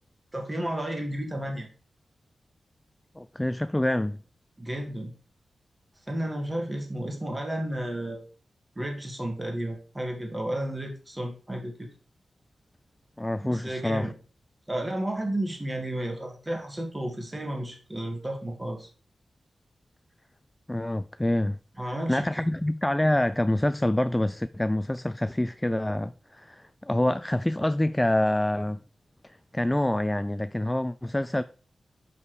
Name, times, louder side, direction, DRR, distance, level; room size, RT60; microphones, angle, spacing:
voice 1, 0.3-1.7 4.6-5.1 6.1-8.2 8.8-11.9 13.4-14.1 14.7-18.9 21.8-22.4, right 1 dB, 15° right, 2.1 m, -32 dB
voice 2, 3.2-4.2 13.2-14.1 20.7-21.6 21.8-28.8 29.2-31.4, left 1 dB, 10° left, 0.3 m, -26 dB
7.1 x 7.0 x 4.9 m
wide cardioid pair, 100°, 0 cm